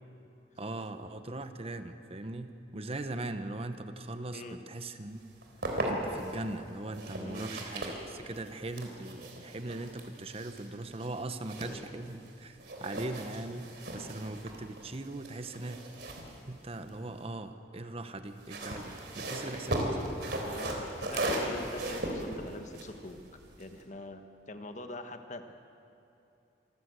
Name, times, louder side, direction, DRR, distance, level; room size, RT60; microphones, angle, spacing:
voice 1, 0.6-5.2 5.8-15.8 16.5-20.1, right 2 dB, 35° right, 9 dB, 1.0 m, -40 dB
sound 1, 5.2-6.3 6.9-12.3 12.6-17.2 18.2-23.8, right 1 dB, 70° right, 3.5 m, -37 dB
voice 2, 7.2-7.5 11.7-11.9 12.9-13.0 13.6-13.7 20.4-23.3 23.6-25.6, left 2 dB, 45° left, 6 dB, 1.3 m, -44 dB
26.0 x 14.5 x 8.1 m, 2.8 s
head